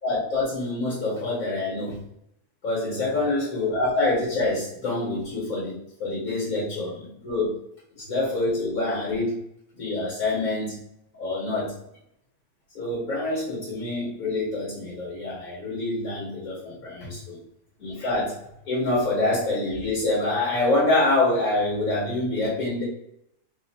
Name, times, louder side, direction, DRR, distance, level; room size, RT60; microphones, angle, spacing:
voice 1, 0.0-2.0 2.6-7.5 8.0-9.4 9.7-10.8 11.1-11.7 12.8-17.4 17.8-18.4 18.7-22.8, left 2 dB, 65° left, -5 dB, 1.9 m, -26 dB
3.8 x 2.7 x 4.1 m, 0.78 s
omnidirectional pair, 1.6 m